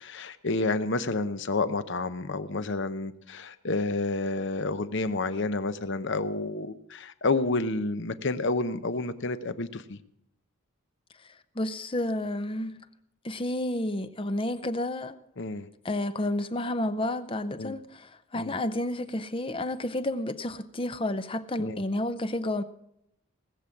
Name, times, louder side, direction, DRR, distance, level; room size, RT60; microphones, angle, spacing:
voice 1, 0.0-10.0 15.4-15.7 17.6-17.7 18.3-18.6 21.6-21.8, left 3 dB, 55° left, 0.8 m, -30 dB
voice 2, 11.2-12.8 13.2-15.2 15.8-22.6, left 1 dB, 25° left, 0.6 m, -31 dB
19.0 x 7.7 x 7.2 m
head